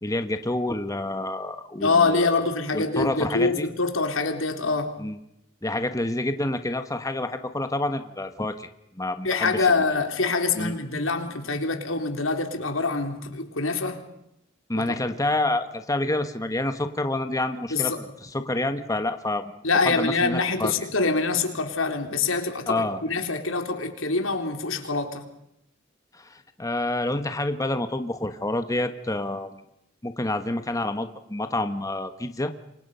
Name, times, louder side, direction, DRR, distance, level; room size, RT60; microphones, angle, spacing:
voice 1, 0.0-2.4 2.7-3.7 5.0-5.2 5.6-8.7 8.9-9.7 10.6-10.8 14.7-20.7 22.7-23.0 26.1-29.5 30.0-32.5, left 2 dB, 15° left, 8 dB, 1.4 m, -28 dB
voice 2, 1.8-4.9 9.2-14.0 14.8-15.0 17.7-18.0 19.6-25.2, left 3 dB, 90° left, 5 dB, 3.8 m, -25 dB
29.0 x 24.5 x 5.7 m, 0.80 s
head